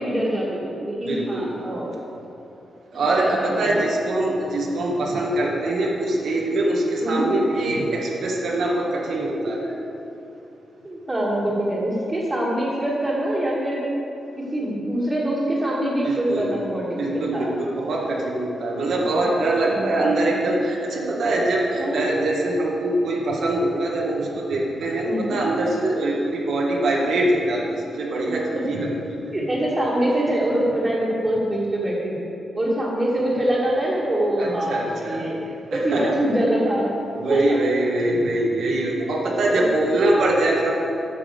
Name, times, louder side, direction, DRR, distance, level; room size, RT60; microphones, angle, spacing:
voice 1, 0.0-1.8 3.4-3.8 7.0-7.3 9.5-9.6 10.8-13.9 14.5-17.5 19.7-20.1 21.8-22.2 25.0-25.4 29.3-32.2 32.6-35.4 35.7-36.9 37.3-37.6 39.5-39.9, right 1 dB, 20° right, -8 dB, 1.9 m, -24 dB
voice 2, 1.0-1.6 2.9-9.6 16.0-16.5 16.9-28.9 29.2-29.3 34.4-35.3 35.7-36.2 37.1-40.7, right 2 dB, 75° right, -2 dB, 1.6 m, -23 dB
9.6 x 6.0 x 6.7 m, 2.8 s
cardioid pair, 110°, 0 cm